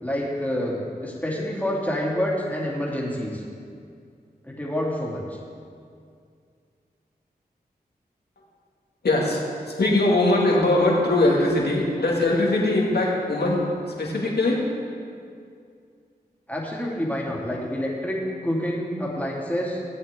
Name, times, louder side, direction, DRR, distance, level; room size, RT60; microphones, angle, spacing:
voice 1, 0.0-3.4 4.4-5.4 16.5-19.8, equal, 10° left, -4 dB, 2.8 m, -28 dB
voice 2, 9.0-14.6, left 2 dB, 75° left, -3 dB, 2.2 m, -21 dB
16.5 x 8.4 x 3.7 m, 2.3 s
cardioid pair, 45°, 17 cm